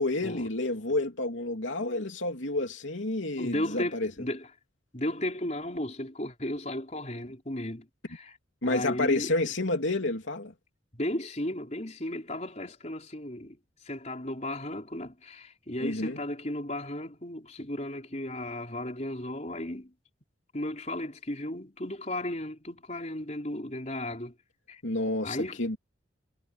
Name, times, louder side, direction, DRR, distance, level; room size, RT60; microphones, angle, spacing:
voice 1, 0.0-4.1 8.6-10.5 15.8-16.2 24.8-25.8, left 2 dB, 80° left, 3.0 m, -29 dB
voice 2, 3.4-4.5 4.9-8.4 8.6-9.3 10.9-13.6 13.8-19.9 20.5-24.3 24.7-24.8 25.2-25.6, left 1 dB, 35° left, 4.8 m, -35 dB
head